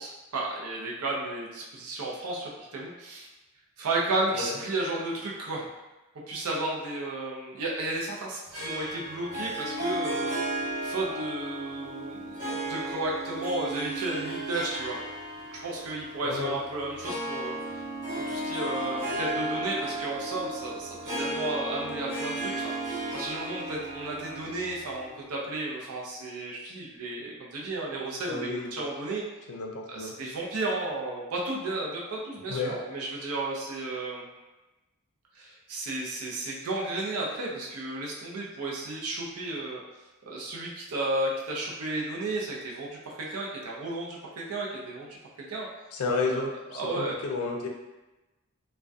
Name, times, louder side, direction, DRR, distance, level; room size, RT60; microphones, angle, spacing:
voice 1, 0.0-3.3 3.8-5.7 6.3-10.4 10.8-15.0 15.6-17.6 18.1-22.7 23.1-29.2 29.9-34.2 35.3-39.8 40.3-45.1 45.5-45.7 46.2-46.4 46.7-47.2, right 2 dB, 90° right, -3 dB, 0.5 m, -33 dB
Harp, 8.5-25.3, right 1 dB, 55° right, 1.3 m, -34 dB
voice 2, 16.2-16.6 28.3-28.7 29.5-30.1 32.5-32.8 45.9-47.7, left 3 dB, 75° left, 1 dB, 0.4 m, -31 dB
2.3 x 2.1 x 2.5 m, 1.1 s
head